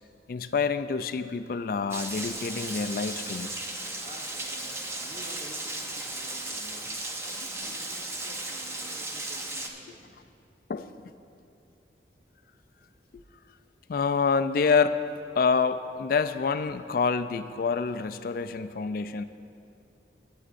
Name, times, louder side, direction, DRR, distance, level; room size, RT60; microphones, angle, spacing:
voice 1, 0.3-3.5 10.7-11.1 13.9-15.0 15.3-19.2, left 5 dB, 55° left, 11 dB, 0.3 m, -27 dB
Rain, 1.9-9.7, right 2 dB, 15° right, 0.6 m, -36 dB
voice 2, 4.0-6.9 7.2-10.2, right 1 dB, 45° right, 0 dB, 1.2 m, -50 dB
16.5 x 9.2 x 2.5 m, 2.6 s
head